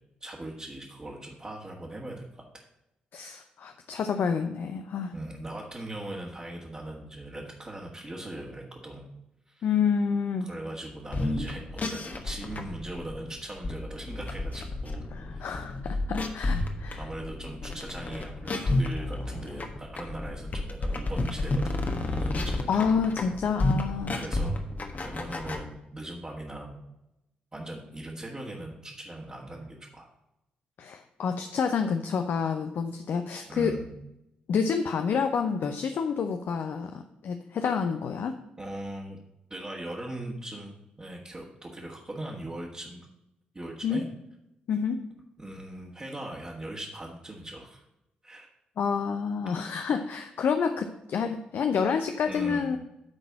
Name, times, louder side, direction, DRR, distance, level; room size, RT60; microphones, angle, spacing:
voice 1, 0.2-2.6 5.1-9.1 9.5-9.7 10.4-15.0 15.3-15.5 16.4-16.5 16.9-22.7 24.1-24.7 25.0-26.9 27.5-30.1 33.5-33.9 38.6-39.2 39.5-43.1 43.5-44.0 45.4-47.8 48.2-48.5 52.3-52.8, right 1 dB, 25° right, -5 dB, 1.8 m, -40 dB
voice 2, 3.1-5.1 9.6-10.5 15.1-17.0 22.7-24.2 30.8-33.8 34.5-38.4 43.8-44.1 44.7-45.0 48.8-52.8, left 6 dB, 60° left, 7 dB, 0.6 m, -28 dB
sound 1, 11.0-25.6, left 2 dB, 45° left, 1.4 m, -31 dB
9.8 x 4.0 x 7.3 m, 0.87 s
hypercardioid pair, 40°, 4 cm